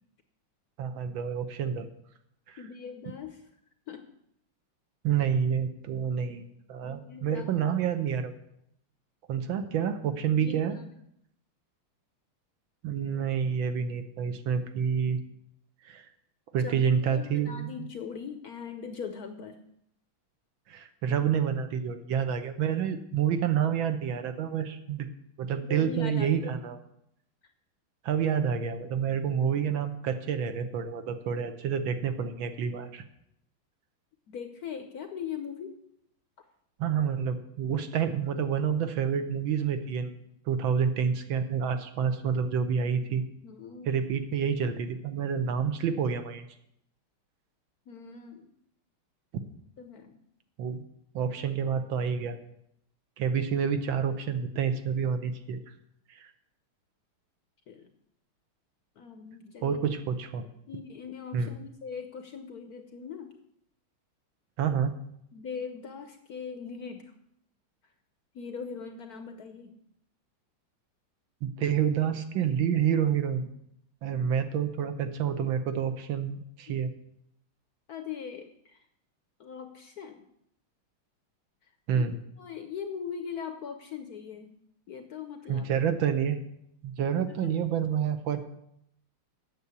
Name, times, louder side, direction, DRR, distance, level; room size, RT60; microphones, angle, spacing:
voice 1, 0.8-1.9 2.5-2.6 5.0-6.4 6.7-8.3 9.3-10.8 12.8-15.2 15.8-16.0 16.5-17.7 20.7-25.1 25.4-26.8 28.0-33.0 36.8-40.1 40.5-43.2 43.8-46.5 50.6-50.8 51.1-52.4 53.2-55.6 56.1-56.3 59.6-60.4 61.3-61.5 64.6-64.9 71.4-73.5 74.0-76.9 81.9-82.2 85.5-86.4 86.8-88.4, right 7 dB, 70° right, 8 dB, 1.5 m, -28 dB
voice 2, 2.6-3.5 3.9-4.1 6.8-7.5 10.3-10.8 16.6-19.6 25.6-26.7 34.3-35.8 42.8-44.0 47.9-48.5 49.8-50.2 57.7-57.9 59.0-59.8 60.7-63.4 65.3-67.1 68.3-69.7 74.1-74.5 76.7-76.8 77.9-78.8 79.4-80.3 81.6-81.7 82.0-84.5 84.9-85.7 87.3-87.6, left 6 dB, 65° left, 7 dB, 1.0 m, -41 dB
8.7 x 7.0 x 8.1 m, 0.75 s
omnidirectional pair, 2.4 m